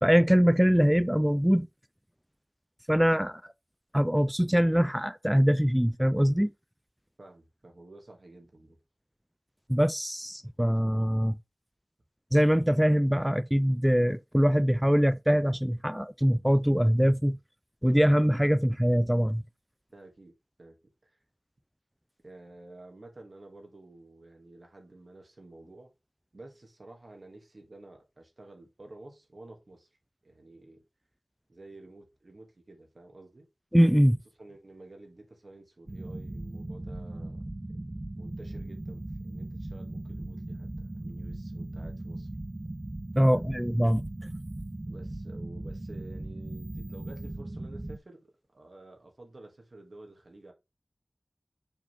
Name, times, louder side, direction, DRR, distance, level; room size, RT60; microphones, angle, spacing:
voice 1, 0.0-1.7 2.9-3.4 3.9-6.5 9.7-11.4 12.3-17.4 17.8-19.4 33.7-34.2 43.2-44.0, equal, 5° right, 0.3 m, -23 dB
voice 2, 7.2-8.8 19.9-20.3 20.6-20.7 21.0-21.2 22.2-25.9 26.3-29.9 30.2-30.8 31.5-33.5 34.4-37.4 37.7-37.8 38.2-42.3 43.2-43.5 44.8-50.5, right 2 dB, 65° right, 2.5 m, -51 dB
sound 1, 35.9-48.0, right 1 dB, 40° right, 1.1 m, -38 dB
6.8 x 5.4 x 3.6 m
wide cardioid pair, 50°, 0 cm